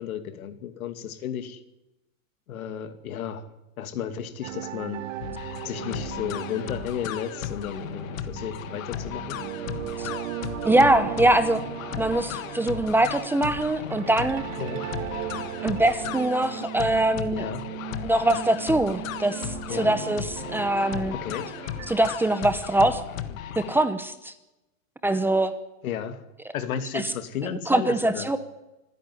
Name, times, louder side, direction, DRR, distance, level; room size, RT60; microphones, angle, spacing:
voice 1, 0.0-1.6 2.5-3.5 3.8-5.1 5.6-9.5 14.6-14.9 17.3-17.7 19.7-20.0 21.1-21.5 25.8-26.3 26.5-28.3, left 9 dB, 90° left, 9 dB, 2.5 m, -33 dB
sound 1, 4.4-21.9, right 12 dB, 65° right, 2.0 m, -37 dB
sound 2, 5.2-23.8, left 10 dB, 70° left, 1.7 m, -36 dB
voice 2, 10.6-11.6 12.0-14.4 15.6-17.5 18.0-21.2 21.9-23.0 23.6-24.3 25.0-25.5 26.9-27.0 27.7-28.4, right 1 dB, 5° right, 11 dB, 0.7 m, -23 dB
25.5 x 10.5 x 9.9 m, 0.99 s
supercardioid pair, 155°, 41 cm